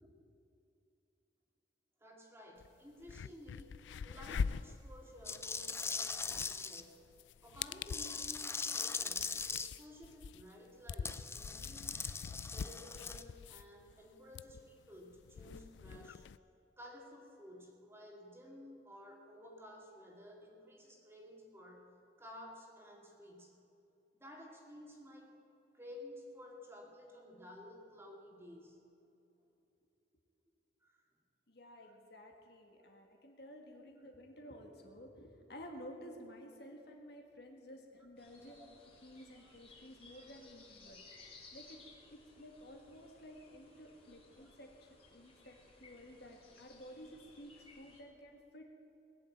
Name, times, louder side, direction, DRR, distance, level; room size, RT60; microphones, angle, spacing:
voice 1, 2.0-3.8 4.0-7.0 7.4-12.2 12.5-16.3 16.8-21.9 22.2-23.6 24.2-25.4 25.7-28.8 30.8-31.0 32.8-32.9 38.3-38.7 39.3-39.5 40.4-40.5 40.9-41.0 44.4-44.5 46.2-46.3, left 1 dB, 15° right, -1 dB, 2.4 m, -54 dB
sound 1, 2.6-2.7 3.0-16.4, left 6 dB, 90° left, 0.3 m, -44 dB
sound 2, 5.2-6.8 7.9-9.7 11.0-13.2, left 5 dB, 15° left, 0.5 m, -40 dB
voice 2, 31.5-38.7 39.0-41.0 41.5-41.8 42.1-48.7, equal, 60° left, 2 dB, 1.9 m, -53 dB
sound 3, 38.2-48.0, left 3 dB, 35° left, 2.9 m, -60 dB
20.5 x 7.4 x 8.6 m, 2.7 s
head